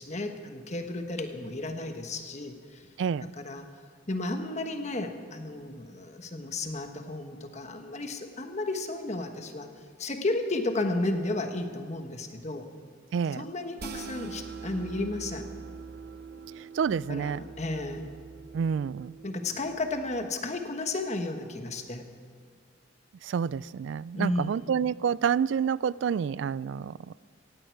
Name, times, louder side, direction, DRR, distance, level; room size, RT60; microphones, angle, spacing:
voice 1, 0.0-2.9 3.2-3.6 4.1-9.7 10.0-12.7 13.3-15.5 16.9-18.1 19.2-22.1 24.1-24.7, left 2 dB, 35° left, 5 dB, 1.2 m, -33 dB
voice 2, 3.0-3.3 13.1-13.5 16.7-17.4 18.5-19.2 23.2-27.3, right 7 dB, 65° right, 21 dB, 0.3 m, -28 dB
sound 1, 13.8-20.3, right 5 dB, 50° right, 0.7 m, -43 dB
17.5 x 16.0 x 4.6 m, 2.1 s
head